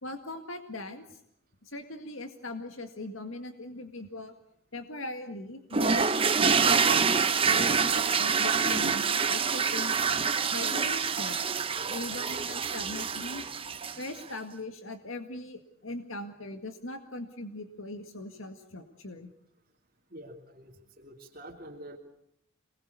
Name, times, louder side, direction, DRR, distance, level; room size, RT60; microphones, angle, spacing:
voice 1, 0.0-1.2 1.6-4.3 4.7-10.0 10.5-11.4 11.9-13.4 14.0-19.3, left 2 dB, 70° left, 6 dB, 1.9 m, -40 dB
sound 1, 5.7-14.2, right 5 dB, 25° right, 0.9 m, -26 dB
voice 2, 20.1-22.0, right 1 dB, 40° right, -1 dB, 2.8 m, -47 dB
27.5 x 20.5 x 8.3 m, 0.73 s
head